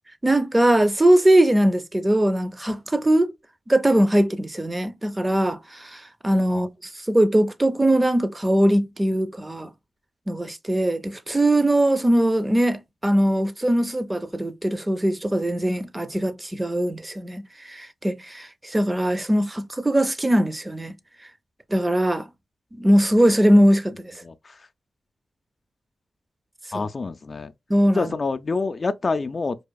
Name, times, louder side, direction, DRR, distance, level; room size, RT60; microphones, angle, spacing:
voice 1, 0.2-3.3 3.7-6.7 7.1-9.7 10.3-20.9 21.7-22.2 22.8-24.1 26.7-26.9 27.7-28.1, right 1 dB, 25° right, 0.5 m, -21 dB
voice 2, 24.2-24.6 26.7-27.5 27.9-29.6, left 4 dB, 50° left, 0.3 m, -27 dB
4.7 x 2.4 x 2.2 m
supercardioid pair, 40°, 0 cm